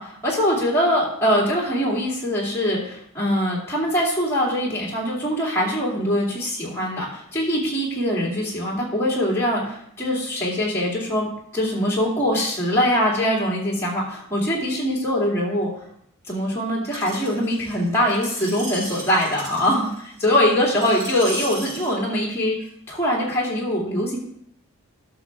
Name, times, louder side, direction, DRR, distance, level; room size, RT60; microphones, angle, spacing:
voice 1, 0.0-15.7 16.3-22.6 22.9-24.2, equal, 10° left, -5 dB, 2.5 m, -23 dB
Screech, 16.9-21.9 22.6-22.7, right 2 dB, 90° right, 3.4 m, -36 dB
12.0 x 6.2 x 3.6 m, 0.69 s
head